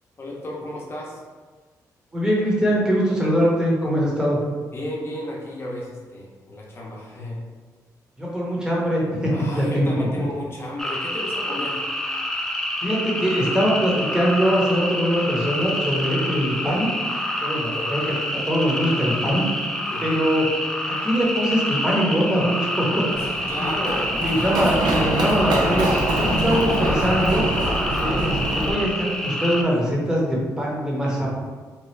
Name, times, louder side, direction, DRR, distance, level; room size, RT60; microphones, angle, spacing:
voice 1, 0.2-1.2 4.7-7.4 9.3-11.8 17.7-17.9 19.9-20.1 23.2-24.1, left 1 dB, 35° left, -3 dB, 0.8 m, -33 dB
voice 2, 2.1-4.4 8.2-9.3 9.6-10.2 12.8-16.9 17.4-18.0 18.3-19.5 20.0-20.4 20.8-22.9 23.3-23.7 24.2-25.9 26.2-27.4 28.0-31.3, equal, 10° right, -4 dB, 1.0 m, -22 dB
sound 1, 10.8-29.6, left 1 dB, 10° left, 0.4 m, -27 dB
Run, 23.1-28.7, right 2 dB, 75° right, 0.5 m, -24 dB
3.0 x 2.2 x 3.2 m, 1.4 s
cardioid pair, 80°, 7 cm